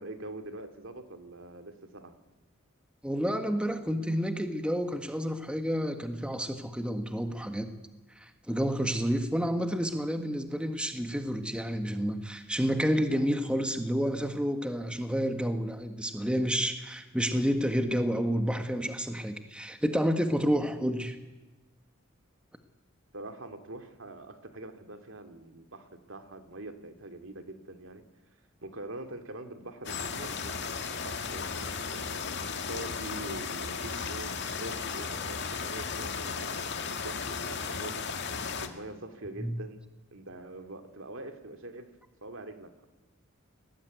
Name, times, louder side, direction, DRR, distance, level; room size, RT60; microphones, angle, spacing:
voice 1, 0.0-2.1 23.1-28.0 28.6-32.1 32.7-36.5 36.9-38.1 38.6-39.8 40.1-41.9 42.2-42.9, right 2 dB, 65° right, 7 dB, 2.6 m, -44 dB
voice 2, 3.0-7.7 8.2-21.1 39.4-39.6, equal, 5° right, 6 dB, 1.7 m, -30 dB
sound 1, 29.8-38.7, left 5 dB, 55° left, 2.1 m, -35 dB
29.5 x 19.5 x 9.5 m, 1.1 s
head